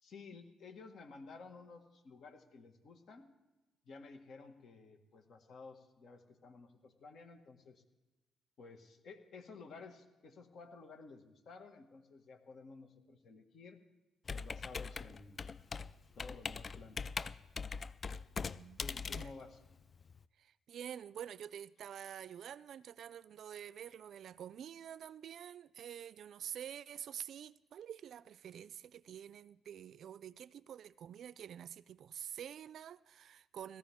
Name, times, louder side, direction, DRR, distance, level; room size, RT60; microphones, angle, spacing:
voice 1, 0.0-3.3 3.8-7.8 8.6-13.8 14.3-15.5 16.2-17.1 18.8-19.6, left 4 dB, 60° left, 1.8 m, -54 dB
Computer keyboard, 14.3-20.2, left 5 dB, 40° left, 0.4 m, -42 dB
voice 2, 18.5-19.3 20.4-33.8, right 9 dB, 65° right, 0.4 m, -48 dB
18.5 x 14.0 x 3.6 m
cardioid pair, 90°, 0 cm